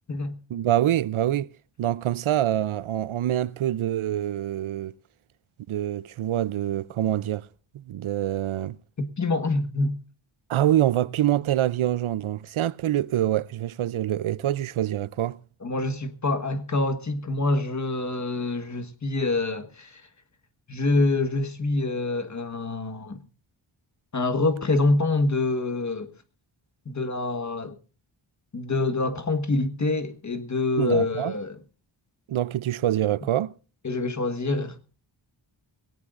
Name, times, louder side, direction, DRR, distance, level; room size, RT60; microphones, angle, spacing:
voice 1, 0.5-1.5 1.8-4.9 5.7-7.5 7.7-8.8 10.5-15.4 30.8-31.3 32.3-33.5, right 12 dB, 85° right, 0.6 m, -25 dB
voice 2, 9.0-10.0 15.6-20.0 20.7-23.2 24.1-26.1 26.8-27.8 28.5-31.6 33.8-34.8, left 2 dB, 35° left, 1.4 m, -26 dB
20.0 x 18.0 x 2.5 m
wide cardioid pair, 155°, 48 cm